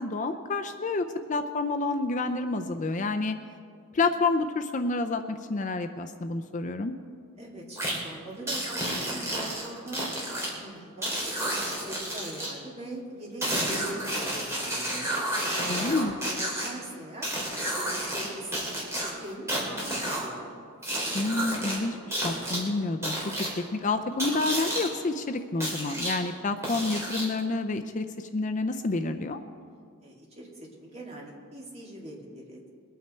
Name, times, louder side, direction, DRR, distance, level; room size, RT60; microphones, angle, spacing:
voice 1, 0.0-3.4 3.9-6.9 15.7-16.1 21.1-23.2 23.7-29.4, left 3 dB, 35° left, 7 dB, 0.5 m, -29 dB
voice 2, 7.4-11.6 11.9-17.3 17.8-20.5 30.0-32.7, right 1 dB, 30° right, -3 dB, 2.6 m, -42 dB
sound 1, 7.8-8.0 8.5-10.5 11.0-12.5 13.4-16.7 17.2-18.3 18.5-20.3 20.8-21.8 22.1-22.6 23.0-23.5 24.2-24.9 25.6-26.2 26.6-27.4, right 1 dB, 15° right, 3.2 m, -31 dB
22.5 x 9.2 x 4.4 m, 2.2 s
head